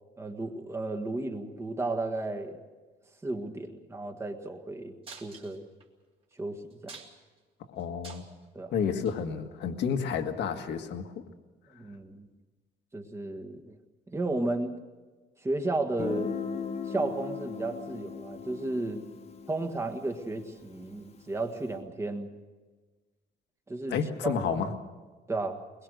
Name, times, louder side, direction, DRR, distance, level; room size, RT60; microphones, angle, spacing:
voice 1, 0.2-2.6 3.2-4.9 5.2-5.6 6.3-7.0 8.5-8.7 11.7-12.3 12.9-13.8 14.1-14.7 15.4-16.3 16.8-19.0 19.5-22.3 23.7-23.9 24.2-24.7 25.3-25.6, right 2 dB, 15° right, 4 dB, 1.6 m, -33 dB
sound 1, 5.0-5.8 6.3-6.4 6.7-7.4 7.8-8.4 9.0-9.2 10.1-10.2, right 4 dB, 30° right, 2.5 m, -47 dB
voice 2, 7.7-8.3 8.7-11.2 23.9-24.7, left 6 dB, 65° left, 6 dB, 1.8 m, -30 dB
Guitar, 16.0-21.5, left 6 dB, 35° left, 1.2 m, -38 dB
23.0 x 21.5 x 6.5 m, 1.3 s
cardioid pair, 175°, 19 cm